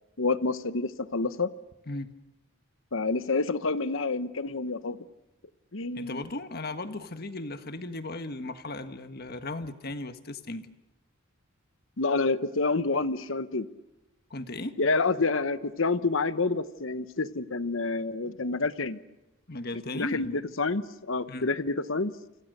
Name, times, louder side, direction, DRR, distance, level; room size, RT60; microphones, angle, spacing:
voice 1, 0.2-1.5 2.9-5.0 5.7-6.2 12.0-13.7 14.8-19.0 19.9-22.1, left 3 dB, 65° left, 13 dB, 1.1 m, -28 dB
voice 2, 5.9-10.7 14.3-14.8 19.5-20.4 21.3-21.5, left 2 dB, 45° left, 9 dB, 1.6 m, -36 dB
29.0 x 26.0 x 6.7 m, 1.0 s
head